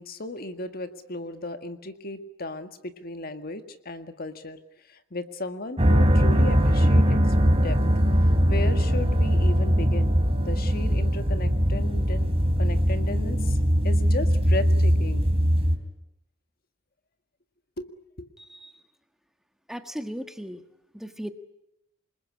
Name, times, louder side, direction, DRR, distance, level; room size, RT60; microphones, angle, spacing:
voice 1, 0.0-4.6 4.9-7.2 7.6-7.8 8.5-12.3 12.6-13.6 13.8-15.3 17.8-17.9 18.2-18.3, left 2 dB, 50° left, 9 dB, 1.8 m, -35 dB
sound 1, 5.8-15.8, equal, 30° right, 3.0 m, -21 dB
voice 2, 18.4-18.7 19.7-20.6 20.9-21.3, equal, ahead, 7 dB, 1.3 m, -36 dB
27.0 x 21.0 x 9.8 m, 0.84 s
head